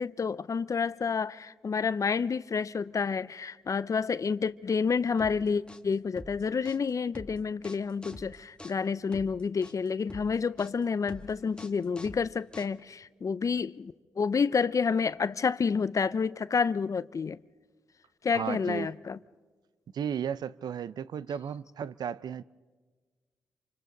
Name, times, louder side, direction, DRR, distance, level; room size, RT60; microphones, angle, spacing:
voice 1, 0.0-17.4 18.2-19.2, left 5 dB, 45° left, 0.6 m, -29 dB
sound 1, 5.2-13.0, left 1 dB, 10° left, 1.6 m, -47 dB
voice 2, 18.3-18.9 19.9-22.4, right 8 dB, 65° right, 0.6 m, -34 dB
27.5 x 25.5 x 4.0 m
supercardioid pair, 45°, 8 cm